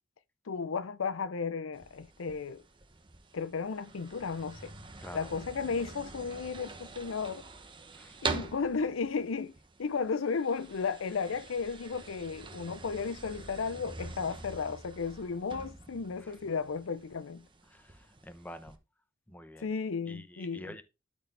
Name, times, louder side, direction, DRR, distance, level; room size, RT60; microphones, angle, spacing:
voice 1, 0.5-2.6 3.3-4.7 5.1-7.5 8.2-17.5 19.6-20.7, left 5 dB, 90° left, 0.6 m, -34 dB
sound 1, 1.7-18.8, right 4 dB, 25° right, 1.0 m, -45 dB
voice 2, 7.9-8.3 16.2-16.4 17.7-18.8 19.3-19.7 20.1-20.8, left 1 dB, 10° left, 0.8 m, -48 dB
12.5 x 4.3 x 3.3 m
head